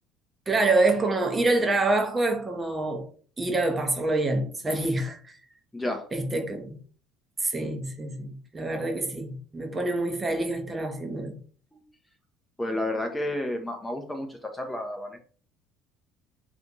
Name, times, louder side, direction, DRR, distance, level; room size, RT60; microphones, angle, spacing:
voice 1, 0.5-3.0 3.4-5.3 6.1-6.8 7.4-11.4, right 2 dB, 20° right, 0.7 m, -26 dB
voice 2, 5.7-6.1 11.7-11.8 12.6-15.2, left 1 dB, 10° left, 0.5 m, -31 dB
2.6 x 2.5 x 3.8 m
figure-of-eight pair, 60°, 0 cm